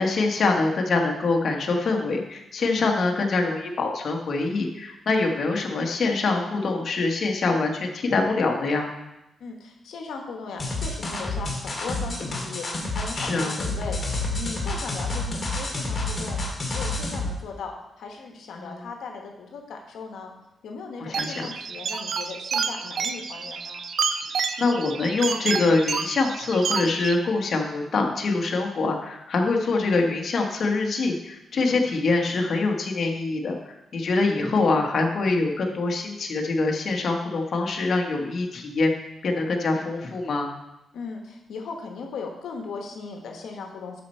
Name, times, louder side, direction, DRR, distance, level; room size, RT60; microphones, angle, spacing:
voice 1, 0.0-8.9 13.2-13.6 18.6-18.9 21.0-21.5 24.6-38.9 39.2-40.5, left 3 dB, 50° left, 1 dB, 1.3 m, -24 dB
voice 2, 9.4-16.4 16.7-20.3 20.6-23.8 40.9-44.0, left 4 dB, 85° left, 2 dB, 1.0 m, -38 dB
sound 1, 10.6-17.3, left 2 dB, 30° left, 2.0 m, -29 dB
sound 2, 21.1-27.1, right 5 dB, 60° right, 0.5 m, -29 dB
11.5 x 4.3 x 4.3 m, 0.90 s
cardioid pair, 120°, 0 cm